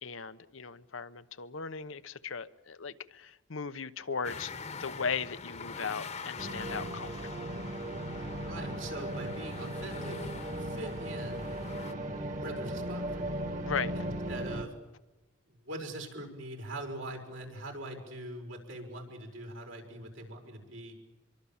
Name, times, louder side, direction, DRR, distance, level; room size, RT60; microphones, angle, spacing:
voice 1, 0.0-7.5 13.7-13.9, left 5 dB, 75° left, 0.9 m, -37 dB
sound 1, 4.2-11.9, left 4 dB, 35° left, 1.2 m, -44 dB
sound 2, 6.4-14.6, right 1 dB, 40° right, 1.9 m, -37 dB
voice 2, 8.2-11.5 12.4-13.5 13.9-14.7 15.6-21.0, right 1 dB, 80° right, 5.6 m, -43 dB
25.0 x 23.5 x 7.3 m
head